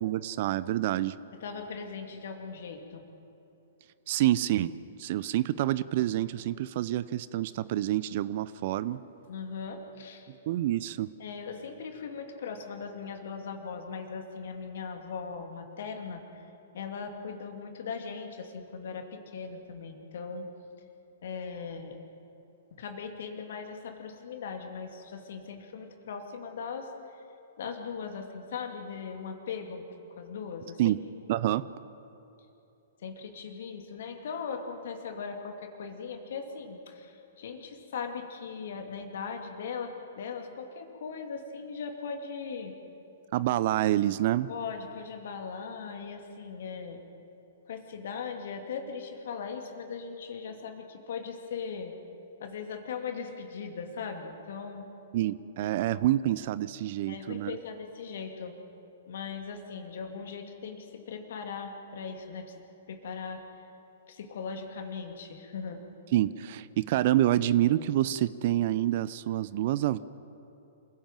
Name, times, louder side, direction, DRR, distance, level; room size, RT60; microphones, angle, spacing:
voice 1, 0.0-1.1 4.1-4.7 5.0-9.0 10.3-11.1 30.8-31.0 31.3-31.6 43.3-44.5 55.1-57.6 66.1-70.0, right 14 dB, 50° right, 17 dB, 0.6 m, -27 dB
voice 2, 1.4-3.0 9.3-10.3 11.2-16.5 16.7-20.5 21.2-22.0 22.7-27.2 27.6-30.9 33.0-42.8 44.5-47.0 47.6-52.0 52.4-54.9 57.1-58.6 59.1-62.6 62.9-63.5 64.1-65.8, left 5 dB, 60° left, 4 dB, 2.7 m, -39 dB
27.5 x 16.0 x 7.6 m, 2.9 s
figure-of-eight pair, 110°, 0 cm